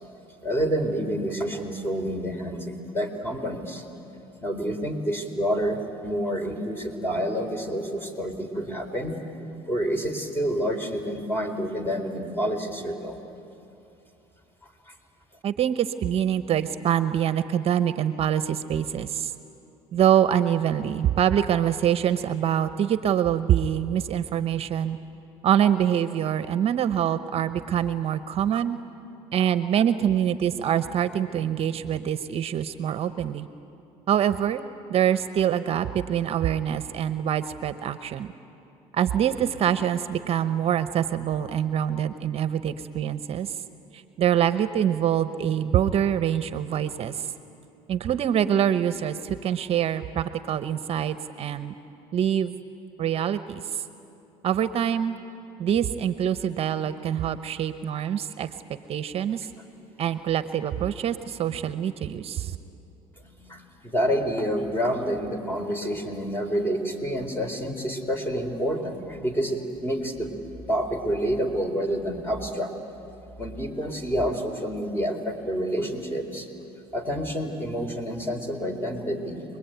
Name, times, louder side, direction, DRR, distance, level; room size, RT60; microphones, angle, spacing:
voice 1, 0.4-3.8 4.4-9.2 9.7-13.2 14.9-15.0 63.2-70.3 70.7-72.7 73.4-76.5 76.9-79.4, equal, 15° left, 5 dB, 4.0 m, -28 dB
voice 2, 15.4-19.3 19.9-25.0 25.4-28.8 29.3-33.5 34.1-34.6 34.9-38.3 38.9-43.5 43.9-47.3 47.9-51.7 52.1-52.5 53.0-53.8 54.4-55.2 55.6-58.5 58.9-59.5 60.0-62.6, right 9 dB, 50° right, 12 dB, 0.9 m, -25 dB
29.0 x 21.5 x 9.3 m, 2.8 s
supercardioid pair, 90°, 13 cm